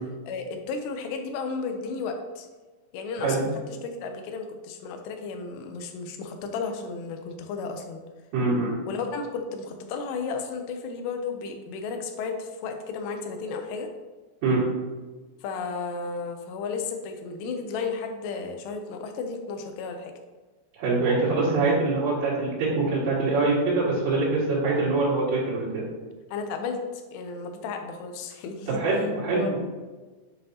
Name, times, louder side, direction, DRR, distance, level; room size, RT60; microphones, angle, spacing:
voice 1, 0.3-2.5 2.9-8.0 8.9-13.9 15.4-20.1 26.3-28.8 29.4-29.5, left 4 dB, 80° left, 5 dB, 2.8 m, -33 dB
voice 2, 8.3-8.7 14.4-14.6 20.8-25.8 28.7-29.6, right 3 dB, 80° right, -9 dB, 4.3 m, -24 dB
9.2 x 5.4 x 2.9 m, 1.3 s
omnidirectional pair, 5.0 m